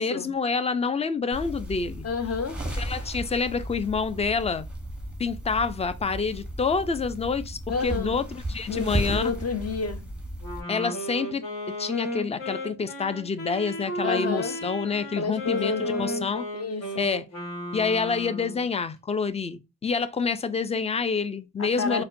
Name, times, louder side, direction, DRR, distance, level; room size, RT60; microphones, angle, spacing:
voice 1, 0.0-2.0 2.7-4.7 5.2-9.3 10.7-16.4 17.0-17.2 17.7-22.0, left 5 dB, 20° left, 0.3 m, -27 dB
sound 1, 1.3-10.6, right 1 dB, 5° right, 0.9 m, -35 dB
voice 2, 2.0-2.6 7.7-8.2 8.7-10.1 14.0-14.6 15.2-17.1 21.6-22.0, left 4 dB, 40° left, 0.7 m, -30 dB
Wind instrument woodwind instrument, 10.4-18.6, equal, 65° left, 1.5 m, -34 dB
4.2 x 2.2 x 2.5 m
cardioid pair, 75°, 36 cm